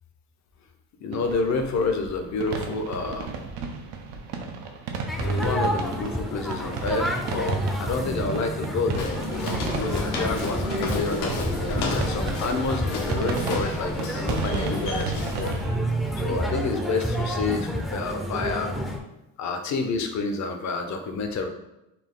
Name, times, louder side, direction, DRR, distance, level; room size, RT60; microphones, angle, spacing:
voice 1, 1.0-3.3 5.2-15.5 16.2-18.8 19.4-21.5, left 3 dB, 45° left, 6 dB, 0.7 m, -29 dB
sound 1, 1.1-15.7, right 5 dB, 85° right, 0.7 m, -35 dB
sound 2, 5.1-19.0, equal, ahead, 0.5 m, -29 dB
Walk footsteps, 9.0-15.7, left 3 dB, 75° left, 0.9 m, -34 dB
4.2 x 2.3 x 3.6 m, 0.91 s
cardioid pair, 95°, 38 cm